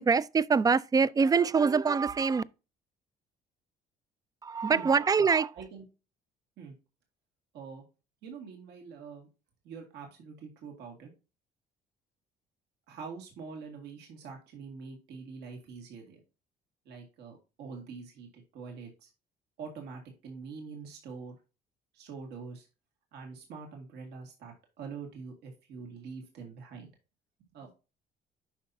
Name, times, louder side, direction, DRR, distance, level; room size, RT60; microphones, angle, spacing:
voice 1, 0.0-2.4 4.4-5.5, right 5 dB, 20° right, 0.4 m, -24 dB
voice 2, 8.2-9.3 9.6-11.1 12.9-16.2 16.9-19.1 19.6-21.4 21.9-22.7 23.1-26.9 27.5-27.7, right 5 dB, 80° right, 2.2 m, -45 dB
9.2 x 5.7 x 2.7 m
cardioid pair, 110°, 17 cm